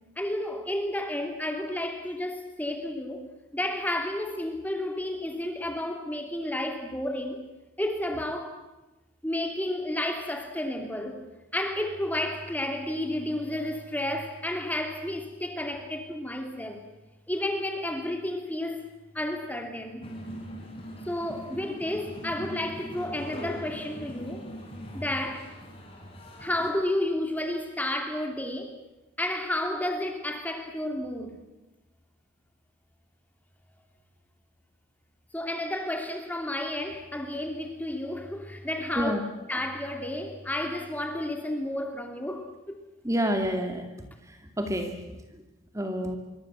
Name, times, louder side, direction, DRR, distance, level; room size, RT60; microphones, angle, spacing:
voice 1, 0.2-7.5 7.8-8.6 9.2-11.3 11.5-16.8 17.3-20.1 21.0-24.5 24.9-25.5 26.4-28.7 29.2-31.4 35.3-39.1 39.5-42.8, left 1 dB, 10° left, 5 dB, 2.5 m, -31 dB
sound 1, 20.0-26.7, equal, 30° left, 5.7 m, -41 dB
voice 2, 43.0-43.9 44.6-44.9 45.7-46.2, equal, 15° right, 5 dB, 2.5 m, -27 dB
26.5 x 23.5 x 8.0 m, 1.0 s
head